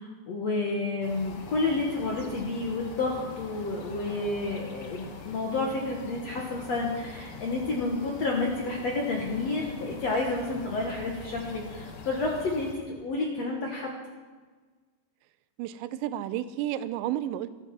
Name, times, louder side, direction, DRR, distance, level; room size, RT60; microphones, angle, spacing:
voice 1, 0.0-13.9, left 3 dB, 60° left, 0 dB, 1.9 m, -30 dB
sound 1, 1.0-12.7, left 4 dB, 90° left, 1.2 m, -44 dB
voice 2, 15.6-17.5, right 12 dB, 90° right, 14 dB, 2.9 m, -31 dB
13.5 x 13.5 x 6.1 m, 1.4 s
omnidirectional pair, 5.0 m